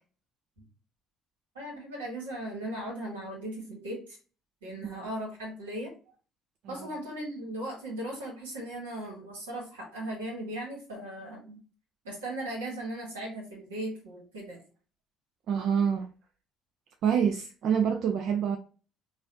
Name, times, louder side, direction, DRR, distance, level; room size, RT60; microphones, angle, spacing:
voice 1, 1.5-4.2 4.6-5.9 6.7-11.6 12.0-14.6, right 1 dB, 85° right, 1.6 m, -37 dB
voice 2, 15.5-16.1 17.0-18.6, right 7 dB, 60° right, 0.4 m, -26 dB
4.7 x 2.5 x 2.8 m
hypercardioid pair, 55°, 0 cm